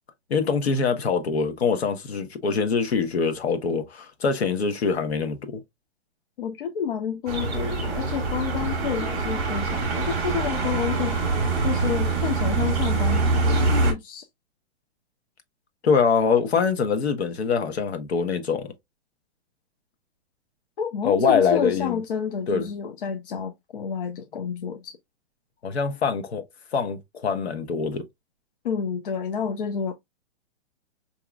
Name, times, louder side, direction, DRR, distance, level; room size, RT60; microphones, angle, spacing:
voice 1, 0.3-5.6 15.8-18.7 21.0-22.0 22.5-22.7 25.6-26.4 26.7-28.0, left 5 dB, 70° left, 1.1 m, -24 dB
voice 2, 6.4-11.2 11.6-14.3 20.8-25.0 28.6-29.9, left 7 dB, 55° left, 0.6 m, -29 dB
sound 1, 7.3-13.9, right 3 dB, ahead, 0.4 m, -24 dB
4.9 x 2.8 x 2.3 m
hypercardioid pair, 170°, 33 cm